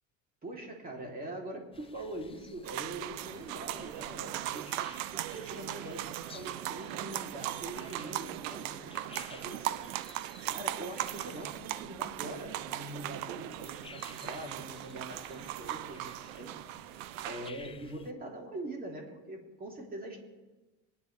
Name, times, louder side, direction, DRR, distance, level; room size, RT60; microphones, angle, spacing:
voice 1, 0.4-9.8 10.5-16.6 17.2-20.2, right 1 dB, 25° right, 0 dB, 3.2 m, -43 dB
sound 1, 1.7-18.1, left 5 dB, 15° left, 0.6 m, -55 dB
sound 2, 2.6-17.5, right 15 dB, 90° right, 0.6 m, -39 dB
22.5 x 10.0 x 3.4 m, 1.2 s
supercardioid pair, 105°, 38 cm